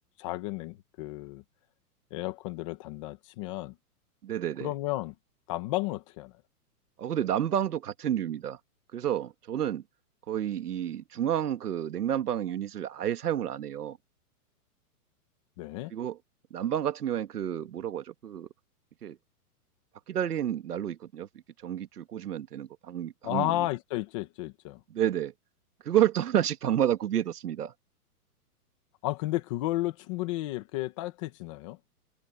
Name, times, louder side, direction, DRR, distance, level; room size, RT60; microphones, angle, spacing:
voice 1, 0.2-1.4 2.1-3.7 4.6-5.1 5.5-6.3 15.6-15.9 23.2-24.8 29.0-31.8, left 17 dB, 20° left, 1.5 m, -33 dB
voice 2, 4.2-4.7 7.0-8.6 8.9-9.8 10.3-14.0 15.9-16.2 16.5-18.5 19.0-19.2 20.1-21.3 21.6-23.6 24.9-25.3 25.8-27.7, right 10 dB, 75° right, 2.3 m, -30 dB
hypercardioid pair, 180°, 47 cm